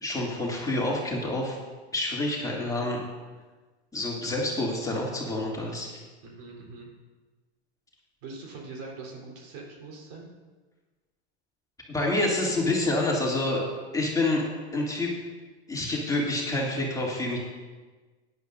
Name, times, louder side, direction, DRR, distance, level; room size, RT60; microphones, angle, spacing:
voice 1, 0.0-1.6 1.9-3.0 3.9-5.9 11.9-13.6 13.9-15.1 15.7-17.4, left 2 dB, 10° left, -4 dB, 2.7 m, -27 dB
voice 2, 6.2-6.9 8.2-10.3, right 3 dB, 55° right, -2 dB, 3.8 m, -42 dB
16.5 x 11.0 x 2.7 m, 1.3 s
hypercardioid pair, 95°, 32 cm